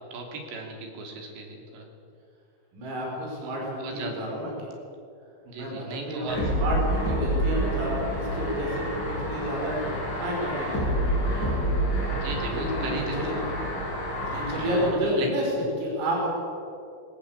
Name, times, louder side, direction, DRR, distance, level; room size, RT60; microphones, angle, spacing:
voice 1, 0.1-1.9 3.4-3.5 3.8-4.1 5.5-6.4 12.1-13.1 15.2-15.3, right 4 dB, 60° right, 2 dB, 5.1 m, -36 dB
voice 2, 2.7-4.5 5.6-10.9 12.4-13.4 14.1-16.3, equal, 80° right, -2 dB, 7.8 m, -30 dB
sound 1, 6.3-14.9, equal, 40° left, 7.1 m, -28 dB
20.5 x 18.0 x 8.5 m, 2.5 s
omnidirectional pair, 6.0 m